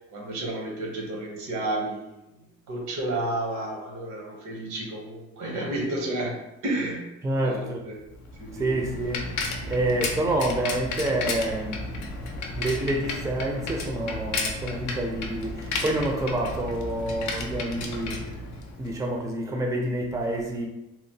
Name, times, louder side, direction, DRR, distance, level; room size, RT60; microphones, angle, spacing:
voice 1, 0.1-2.1 2.7-6.3 6.6-7.0 7.4-8.0 8.4-8.7, right 1 dB, 75° right, 0 dB, 0.9 m, -31 dB
voice 2, 7.2-7.8 8.5-9.2 9.7-12.0 12.6-18.2 18.8-20.7, right 1 dB, 10° right, 0 dB, 0.4 m, -28 dB
Bicycle, 8.1-19.0, left 3 dB, 70° left, 0.5 m, -33 dB
2.8 x 2.0 x 2.7 m, 0.94 s
cardioid pair, 90°, 30 cm